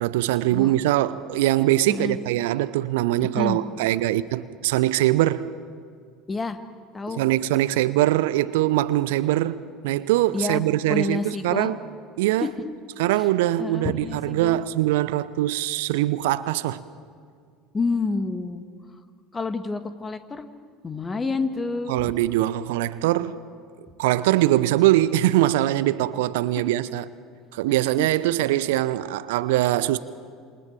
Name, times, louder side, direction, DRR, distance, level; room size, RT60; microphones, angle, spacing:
voice 1, 0.0-5.5 7.1-11.8 12.2-12.5 13.0-16.8 21.9-23.4 24.0-27.0 27.5-30.0, right 15 dB, 65° right, 0.8 m, -22 dB
voice 2, 1.9-2.2 3.2-3.6 6.3-6.6 6.9-7.2 10.3-10.6 10.9-11.7 12.4-12.5 13.2-13.3 13.6-14.6 17.7-18.6 19.3-20.5 20.8-22.1 27.7-28.1, left 3 dB, 20° left, 1.9 m, -29 dB
27.5 x 27.5 x 7.5 m
figure-of-eight pair, 65°, 0 cm